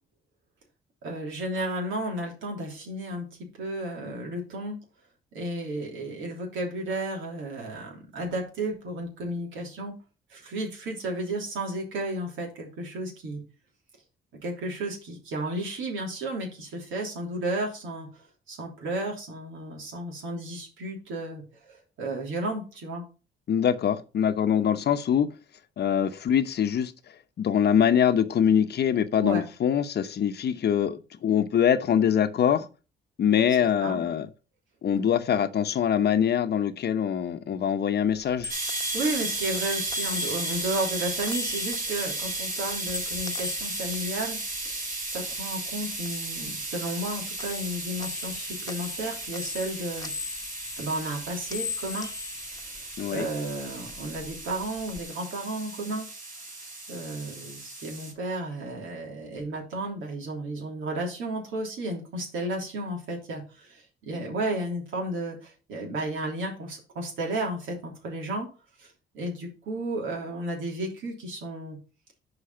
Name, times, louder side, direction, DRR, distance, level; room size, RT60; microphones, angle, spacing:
voice 1, 1.0-3.3 3.6-4.8 5.3-9.9 10.3-13.4 14.4-18.1 18.5-23.0 29.2-29.4 33.8-34.0 38.9-44.4 45.1-50.1 50.8-52.1 53.1-56.1 56.9-68.5 68.8-68.9 69.1-71.8, right 1 dB, 80° right, 3.1 m, -33 dB
voice 2, 23.5-25.3 25.8-26.9 27.4-32.7 33.2-34.3 34.8-38.5 53.0-53.3, left 8 dB, 55° left, 0.8 m, -24 dB
sound 1, 38.1-45.4 45.7-47.1 47.4-53.4 53.7-55.0, left 5 dB, 20° left, 1.1 m, -40 dB
sound 2, 38.5-58.1, right 2 dB, 45° right, 3.9 m, -35 dB
6.6 x 4.8 x 5.7 m
cardioid pair, 90°, 20 cm